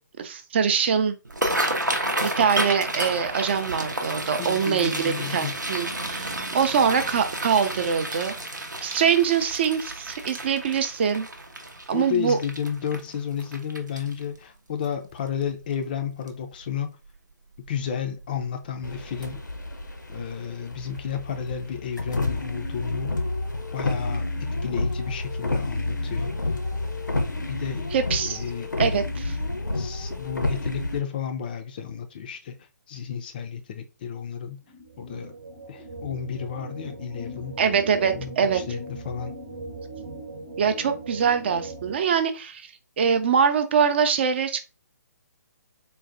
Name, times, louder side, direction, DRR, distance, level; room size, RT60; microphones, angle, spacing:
voice 1, 0.2-1.2 2.2-8.3 8.8-11.3 11.9-12.4 27.9-28.4 28.8-29.4 37.6-38.6 40.6-44.6, right 7 dB, 35° right, 0.4 m, -23 dB
sound 1, 1.2-14.4 14.8-15.1 15.4-15.9 16.3-16.4 17.7-17.8 18.2-18.3 18.8-18.9, right 1 dB, 85° right, 0.7 m, -31 dB
voice 2, 4.4-5.6 11.9-17.0 17.6-19.4 20.1-23.2 23.7-26.4 27.5-27.9 28.2-28.7 29.7-34.6 35.0-35.3 35.7-37.6 38.1-39.3, left 8 dB, 30° left, 0.3 m, -32 dB
sound 2, 18.8-31.0, left 2 dB, 85° left, 0.6 m, -29 dB
sound 3, 34.6-42.0, right 2 dB, 55° right, 0.8 m, -39 dB
3.9 x 2.0 x 2.5 m
figure-of-eight pair, 135°, 10 cm